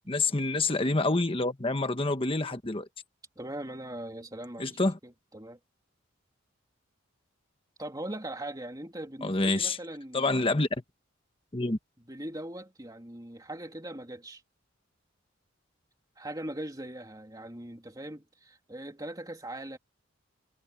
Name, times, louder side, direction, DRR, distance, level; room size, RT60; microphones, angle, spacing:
voice 1, 0.1-2.9 4.6-5.0 9.2-9.8 10.1-10.7 11.5-11.8, left 2 dB, 25° left, 1.3 m, -27 dB
voice 2, 3.4-5.6 7.8-10.5 12.1-14.4 16.2-19.8, right 1 dB, 20° right, 2.8 m, -40 dB
head